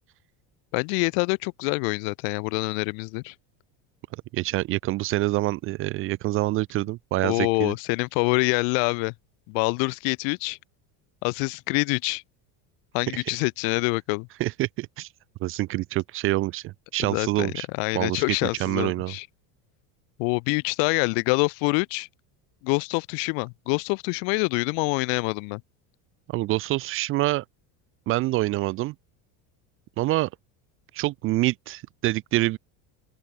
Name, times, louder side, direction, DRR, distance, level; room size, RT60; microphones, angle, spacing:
voice 1, 0.7-3.3 7.2-9.1 9.5-10.6 11.2-12.2 12.9-14.3 17.0-19.3 20.2-22.1 22.6-25.6, left 40 dB or more, 65° left, 1.2 m, -26 dB
voice 2, 4.3-7.7 14.4-15.1 15.4-17.7 17.9-18.2 18.6-19.1 26.3-27.4 28.1-28.9 30.0-30.3 30.9-32.6, right 18 dB, 35° right, 0.4 m, -26 dB
open air
cardioid pair, 170°, 41 cm